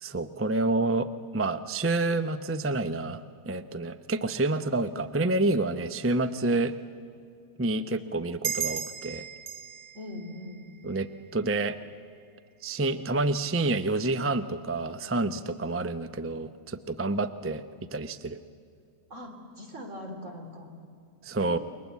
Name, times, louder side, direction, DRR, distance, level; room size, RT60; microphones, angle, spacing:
voice 1, 0.0-1.1 1.3-6.7 7.6-9.2 10.8-11.1 11.3-11.8 12.6-17.6 17.9-18.4 21.2-21.6, right 2 dB, 15° right, 11 dB, 0.4 m, -28 dB
sound 1, 8.4-11.5, right 9 dB, 90° right, 1.6 m, -36 dB
voice 2, 9.9-10.6 19.1-20.7 21.4-21.6, left 1 dB, 50° right, 3 dB, 3.8 m, -41 dB
29.0 x 23.0 x 8.4 m, 2.4 s
omnidirectional pair, 1.6 m